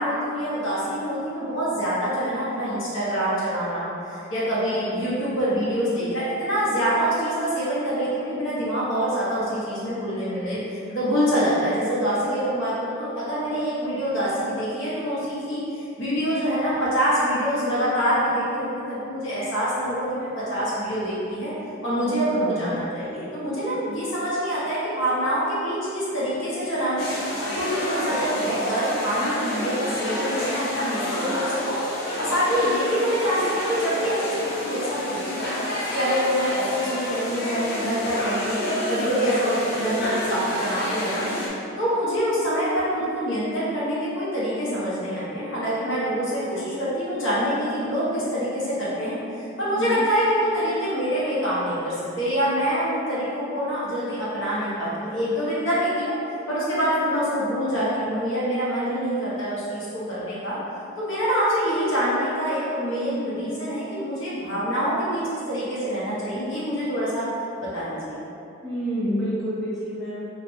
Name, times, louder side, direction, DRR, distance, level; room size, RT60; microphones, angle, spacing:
voice 1, 0.0-21.5 21.8-27.1 27.5-31.8 32.2-38.6 38.9-41.4 41.8-56.1 56.5-60.6 61.0-67.3 67.6-68.2, equal, 70° left, -9 dB, 1.0 m, -25 dB
voice 2, 22.3-22.7 49.6-50.0 68.6-70.3, equal, ahead, -13 dB, 0.9 m, -29 dB
Jagalchi Fish Market Korea, 27.0-41.5, left 1 dB, 50° left, 0.6 m, -29 dB
3.0 x 2.4 x 3.1 m, 2.8 s
head